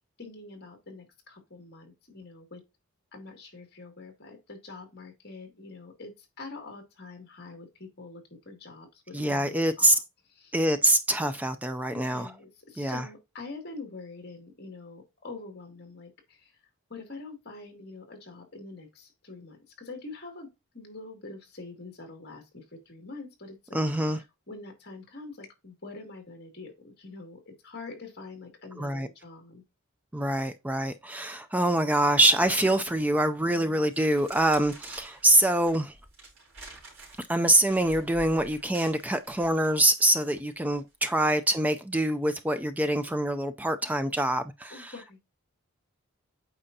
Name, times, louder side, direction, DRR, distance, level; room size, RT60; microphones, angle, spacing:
voice 1, 0.2-2.6 3.1-10.0 10.4-10.6 11.9-16.6 16.9-23.8 24.1-24.2 24.5-29.6 44.7-45.2, left 3 dB, 45° left, 2.5 m, -45 dB
voice 2, 9.1-10.0 10.5-12.3 12.8-13.0 23.7-24.2 28.8-29.1 30.1-35.9 37.2-44.9, right 1 dB, 5° right, 0.4 m, -25 dB
sound 1, 33.3-33.4 33.9-40.8 41.3-41.6, right 2 dB, 70° right, 3.7 m, -49 dB
8.7 x 4.8 x 2.7 m
head